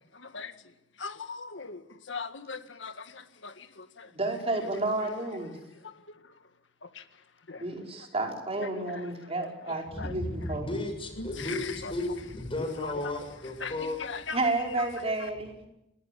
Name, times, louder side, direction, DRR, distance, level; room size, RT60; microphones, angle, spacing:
voice 1, 0.1-4.1 4.6-4.8 5.6-5.9 6.8-7.7 8.6-9.3 9.6-10.6 11.2-11.9 12.8-13.1 13.6-15.3, left 4 dB, 80° left, 1.8 m, -41 dB
voice 2, 4.1-5.6 7.6-10.7 14.3-15.6, right 2 dB, 35° right, 5.1 m, -31 dB
voice 3, 9.9-14.0, left 1 dB, 30° left, 7.0 m, -34 dB
27.0 x 19.5 x 8.6 m
head